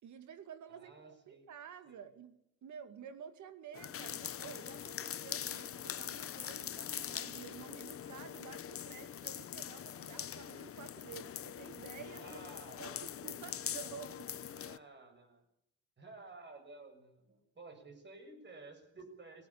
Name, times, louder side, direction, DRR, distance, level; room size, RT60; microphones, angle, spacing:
voice 1, 0.0-12.4 12.8-14.3, right 8 dB, 70° right, 10 dB, 2.4 m, -51 dB
voice 2, 0.7-1.5 1.8-2.0 6.3-6.4 12.2-13.8 14.5-15.4 16.0-19.5, right 3 dB, 35° right, 6 dB, 6.7 m, -54 dB
sound 1, 3.7-14.8, left 9 dB, 50° left, 0.9 m, -43 dB
20.5 x 18.0 x 8.8 m, 0.76 s
cardioid pair, 90°, 30 cm